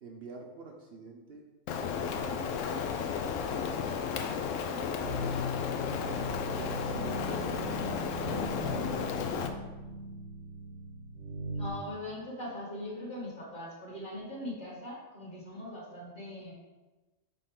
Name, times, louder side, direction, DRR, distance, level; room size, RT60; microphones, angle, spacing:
voice 1, 0.0-2.5 3.4-5.1 5.9-6.2 6.6-7.8 8.2-9.6, right 4 dB, 55° right, 1 dB, 0.8 m, -47 dB
Rain, 1.7-9.5, left 6 dB, 80° left, 0.9 m, -33 dB
sound 1, 5.0-11.7, left 1 dB, 75° right, 1.3 m, -39 dB
voice 2, 11.6-16.5, left 1 dB, 40° left, -4 dB, 1.7 m, -41 dB
6.9 x 3.9 x 3.7 m, 1.2 s
omnidirectional pair, 1.3 m